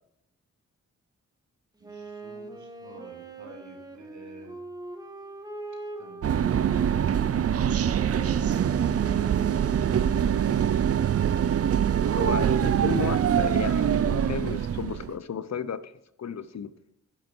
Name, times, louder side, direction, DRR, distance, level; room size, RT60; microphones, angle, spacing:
Wind instrument woodwind instrument, 1.8-10.1, right 2 dB, 15° right, 1.7 m, -42 dB
voice 1, 1.8-4.6, right 2 dB, 70° right, 2 dB, 2.8 m, -51 dB
sound 1, 6.2-15.2, right 9 dB, 50° right, 0.5 m, -24 dB
voice 2, 12.1-15.9 16.2-16.7, left 7 dB, 60° left, 14 dB, 0.8 m, -34 dB
11.0 x 10.0 x 4.6 m, 0.76 s
cardioid pair, 75°, 30 cm